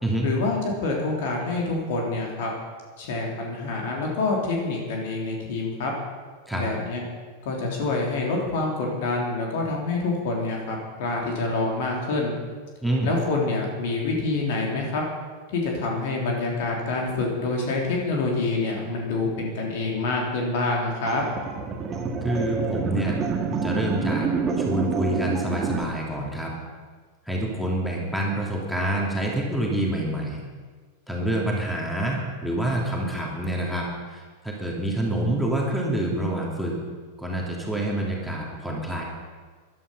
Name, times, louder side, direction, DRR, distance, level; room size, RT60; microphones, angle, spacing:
voice 1, 0.2-2.5 3.0-5.9 6.5-7.0 7.4-12.3 13.0-15.0 15.5-21.2, left 3 dB, 50° left, 0 dB, 3.4 m, -26 dB
voice 2, 12.8-13.1 22.2-23.2 23.6-24.3 24.6-26.5 27.3-30.4 31.1-36.8 37.2-39.0, right 1 dB, ahead, -2 dB, 3.1 m, -27 dB
sound 1, 21.1-25.8, right 5 dB, 25° right, 1.7 m, -27 dB
14.5 x 11.5 x 5.7 m, 1.5 s
figure-of-eight pair, 90°, 0 cm